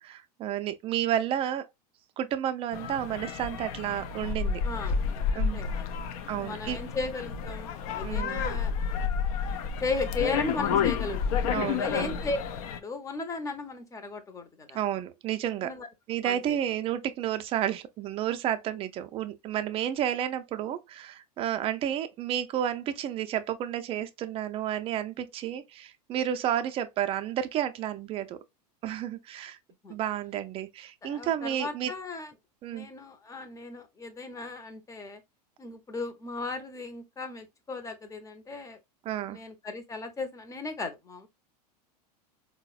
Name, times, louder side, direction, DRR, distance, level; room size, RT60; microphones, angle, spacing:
voice 1, 0.0-1.6 2.2-4.6 5.3-5.6 6.3-6.8 8.0-8.4 11.5-12.2 14.7-15.7 16.1-28.4 28.8-29.6 29.9-31.9 32.6-32.9 39.1-39.4, right 10 dB, 30° right, 0.3 m, -31 dB
sound 1, 2.7-12.8, left 6 dB, 60° left, 0.4 m, -30 dB
voice 2, 4.6-6.0 6.4-8.7 9.8-11.2 11.7-12.4 12.8-14.8 15.6-15.9 16.2-16.6 29.8-30.0 31.0-32.3 32.7-35.2 35.6-38.8 39.3-41.3, left 3 dB, 15° left, 0.6 m, -36 dB
3.9 x 2.0 x 2.3 m
hypercardioid pair, 105°, 21 cm